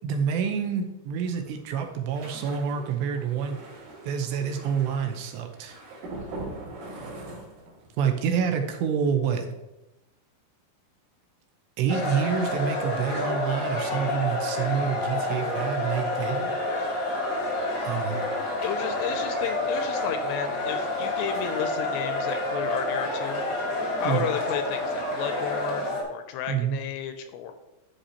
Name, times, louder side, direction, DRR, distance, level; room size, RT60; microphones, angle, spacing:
voice 1, 0.0-3.6 4.0-5.8 8.0-9.5 11.8-16.5 17.8-18.2 24.0-24.2 26.5-26.8, right 7 dB, 85° right, 5 dB, 2.9 m, -27 dB
sound 1, 1.2-8.0 8.3-8.6 8.9-9.1, right 2 dB, 55° right, 3.1 m, -42 dB
sound 2, 11.9-26.0, left 2 dB, 60° left, 1.1 m, -29 dB
voice 2, 18.6-23.4 24.0-27.5, left 8 dB, 85° left, 8 dB, 2.5 m, -33 dB
11.5 x 5.4 x 2.9 m, 0.93 s
omnidirectional pair, 5.0 m